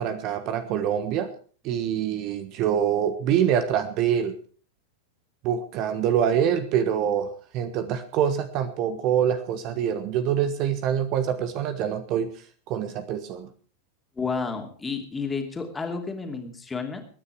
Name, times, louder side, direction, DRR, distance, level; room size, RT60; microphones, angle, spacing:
voice 1, 0.0-1.3 1.6-4.3 5.4-12.3 12.7-13.5, right 9 dB, 40° right, 10 dB, 1.4 m, -25 dB
voice 2, 14.2-17.0, left 4 dB, 15° left, 4 dB, 2.9 m, -31 dB
22.0 x 9.9 x 4.7 m, 0.41 s
figure-of-eight pair, 90°, 0 cm